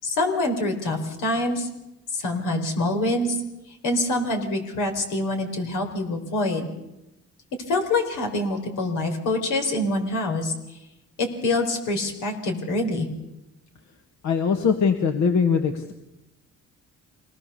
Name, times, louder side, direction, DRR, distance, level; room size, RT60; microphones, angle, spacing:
voice 1, 0.0-1.7 2.1-3.4 3.8-6.7 7.7-10.5 11.2-13.1, left 2 dB, 90° left, 4 dB, 4.4 m, -25 dB
voice 2, 14.2-15.9, left 6 dB, 65° left, 5 dB, 1.8 m, -21 dB
25.5 x 19.0 x 6.9 m, 0.93 s
cardioid pair, 90°, 30 cm